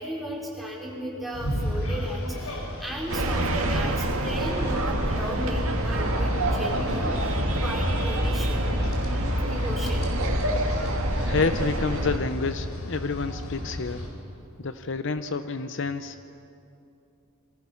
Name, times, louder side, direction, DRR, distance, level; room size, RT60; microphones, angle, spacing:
voice 1, 0.0-7.2 7.6-8.7 9.4-10.1, equal, ahead, -3 dB, 4.2 m, -35 dB
sound 1, 1.3-14.1, left 1 dB, 80° left, 5.0 m, -34 dB
sound 2, 3.1-12.2, right 1 dB, 80° right, 2.1 m, -26 dB
voice 2, 11.2-14.1 14.6-16.2, left 4 dB, 60° left, 10 dB, 0.7 m, -29 dB
28.5 x 23.5 x 5.8 m, 2.7 s
head